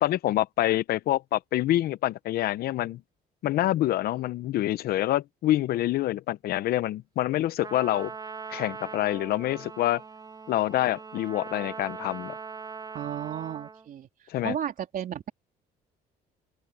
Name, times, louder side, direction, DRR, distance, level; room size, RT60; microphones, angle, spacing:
voice 1, 0.0-3.0 3.4-8.1 8.5-10.0 10.5-12.3 14.3-14.6, left 14 dB, 65° left, 0.7 m, -26 dB
Trumpet, 7.6-13.9, right 5 dB, 25° right, 1.4 m, -41 dB
voice 2, 12.9-14.1 14.4-15.3, right 9 dB, 55° right, 3.4 m, -33 dB
open air
cardioid pair, 110°, 17 cm